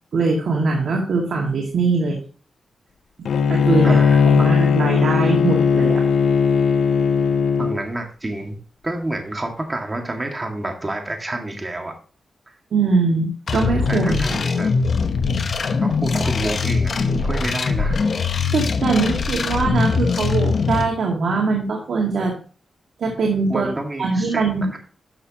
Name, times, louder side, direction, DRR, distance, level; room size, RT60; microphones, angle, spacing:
voice 1, 0.1-2.2 3.5-4.0 4.2-6.0 12.7-14.2 18.5-22.4 23.0-23.7 24.0-24.7, right 4 dB, 75° right, -1 dB, 2.2 m, -21 dB
Bowed string instrument, 3.3-7.8, left 6 dB, 75° left, 0.6 m, -17 dB
voice 2, 3.8-4.5 7.6-12.0 13.9-14.7 15.8-18.0 23.5-24.8, right 2 dB, 20° right, 2 dB, 2.1 m, -29 dB
sound 1, 13.5-20.8, left 4 dB, 60° left, 1.0 m, -21 dB
11.5 x 6.5 x 3.0 m, 0.40 s
cardioid pair, 90°, 0 cm